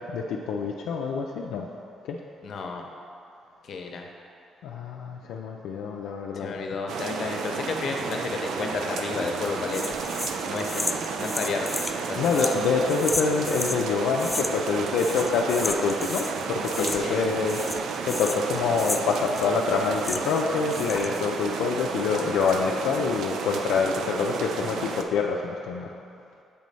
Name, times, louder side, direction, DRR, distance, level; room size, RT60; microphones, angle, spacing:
voice 1, 0.0-1.7 2.1-2.2 4.6-6.5 12.2-17.6 18.0-25.9, left 5 dB, 90° left, -1 dB, 0.4 m, -26 dB
voice 2, 2.4-2.9 3.6-4.1 6.3-10.0 10.5-11.7 12.1-12.5 16.7-17.4, left 4 dB, 60° left, 2 dB, 0.7 m, -32 dB
sound 1, 6.9-25.0, right 5 dB, 75° right, 0.4 m, -32 dB
sound 2, 9.7-13.8 14.2-14.7 15.0-16.4 16.6-17.2 17.5-20.4 20.7-21.2, left 2 dB, 10° left, 0.3 m, -33 dB
6.8 x 3.1 x 5.3 m, 2.5 s
cardioid pair, 90°, 0 cm